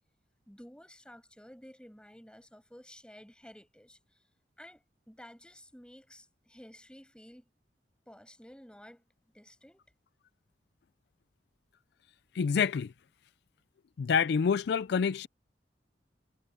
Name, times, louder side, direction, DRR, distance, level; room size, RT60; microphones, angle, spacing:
voice 1, 0.5-4.0 4.6-7.4 8.1-9.0 9.3-9.8, equal, 5° left, 7.0 m, -53 dB
voice 2, 12.3-12.9 14.0-15.3, left 6 dB, 65° left, 0.4 m, -27 dB
head